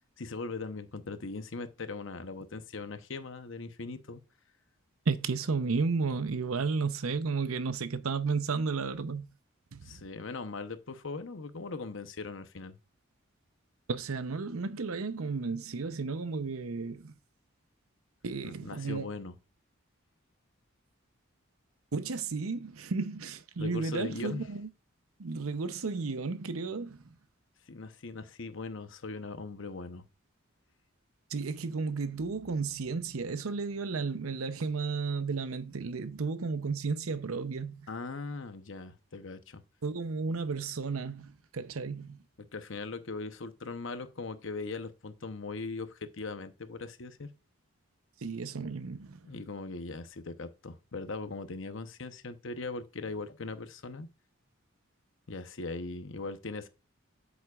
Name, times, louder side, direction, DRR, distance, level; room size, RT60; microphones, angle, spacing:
voice 1, 0.2-4.2 9.8-12.8 18.4-19.4 23.6-24.4 27.7-30.0 37.9-39.6 42.5-47.3 49.3-54.1 55.3-56.7, left 3 dB, 65° left, 0.8 m, -40 dB
voice 2, 5.1-9.3 9.7-10.0 13.9-17.1 18.2-19.1 21.9-24.7 25.2-27.1 31.3-37.8 39.8-42.2 48.2-49.2, right 4 dB, 80° right, 0.7 m, -33 dB
8.2 x 7.2 x 2.4 m
head